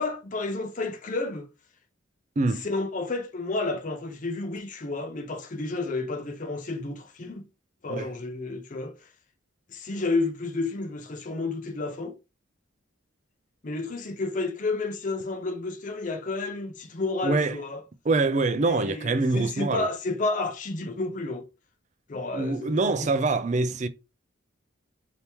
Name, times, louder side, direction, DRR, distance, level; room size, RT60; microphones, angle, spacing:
voice 1, 0.0-1.5 2.6-7.4 7.8-9.0 9.7-12.2 13.6-17.8 18.6-21.4 22.1-23.1, left 3 dB, 40° left, 0.5 m, -31 dB
voice 2, 2.4-2.7 7.9-8.1 17.2-17.6 18.0-19.9 22.3-23.9, right 3 dB, 35° right, 0.4 m, -25 dB
2.9 x 2.8 x 3.4 m
head